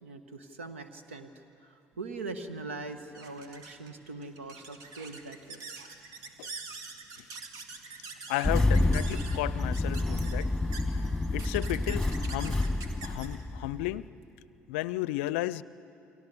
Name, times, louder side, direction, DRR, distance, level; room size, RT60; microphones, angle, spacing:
voice 1, 0.0-5.6, right 3 dB, 85° right, 9 dB, 1.3 m, -42 dB
sound 1, 2.0-14.9, right 4 dB, 65° right, 2.0 m, -46 dB
voice 2, 8.3-10.5 10.9-11.0 11.3-12.6 13.0-14.1 14.7-15.6, left 16 dB, 75° left, 19 dB, 0.5 m, -33 dB
Engine starting, 8.4-14.0, left 2 dB, 5° left, 1.9 m, -28 dB
29.0 x 23.5 x 7.0 m, 2.6 s
figure-of-eight pair, 55°, 7 cm